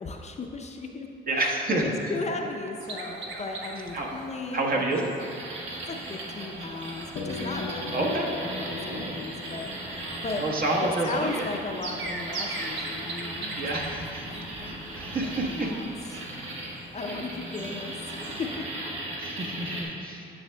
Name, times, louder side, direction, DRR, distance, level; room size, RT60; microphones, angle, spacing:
voice 1, 0.0-5.2 5.9-9.7 10.2-10.5 10.8-13.7 14.0-16.3 16.7-18.7 19.4-19.6, left 3 dB, 35° left, 2 dB, 0.6 m, -36 dB
voice 2, 1.3-2.1 3.9-4.2 4.5-5.1 7.9-8.3 8.9-9.2 10.4-11.4 13.5-14.3 14.7-15.7 19.2-20.3, right 2 dB, 45° right, -1 dB, 1.1 m, -29 dB
sound 1, 2.8-18.5, right 2 dB, 70° right, 1.0 m, -42 dB
sound 2, 5.2-19.8, right 1 dB, 85° right, 1.3 m, -38 dB
sound 3, 7.2-11.8, left 4 dB, 80° left, 0.7 m, -39 dB
10.0 x 6.3 x 2.2 m, 2.6 s
cardioid pair, 90°, 20 cm